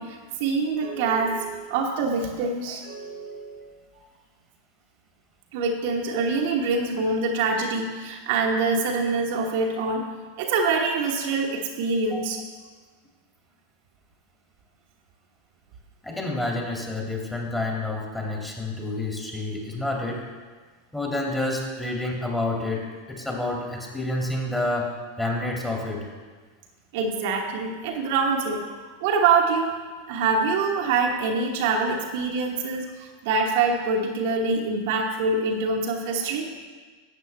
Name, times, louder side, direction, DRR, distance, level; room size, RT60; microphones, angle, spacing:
voice 1, 0.0-3.7 5.5-10.0 10.4-12.4 26.9-29.8 30.1-36.5, right 4 dB, 60° right, 1 dB, 1.1 m, -25 dB
voice 2, 16.0-20.2 20.9-24.9 25.2-26.1, left 2 dB, 10° left, -1 dB, 2.3 m, -29 dB
12.0 x 8.0 x 3.4 m, 1.5 s
figure-of-eight pair, 90°, 0 cm